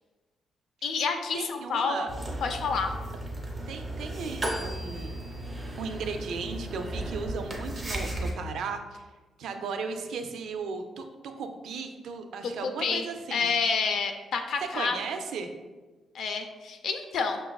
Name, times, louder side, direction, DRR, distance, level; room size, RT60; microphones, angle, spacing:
voice 1, 0.8-2.1 2.4-2.9 12.4-13.0 13.3-15.0 16.1-17.4, left 5 dB, 65° left, 6 dB, 0.4 m, -29 dB
voice 2, 1.3-2.1 3.7-5.3 5.8-9.1 9.4-13.5 14.7-15.5, right 5 dB, 70° right, 6 dB, 0.3 m, -36 dB
sound 1, 2.1-8.3, right 1 dB, 20° right, 0.6 m, -35 dB
Bell, 4.4-7.2, left 1 dB, 25° left, 0.7 m, -47 dB
5.6 x 2.3 x 2.3 m, 1.3 s
wide cardioid pair, 170°, 0 cm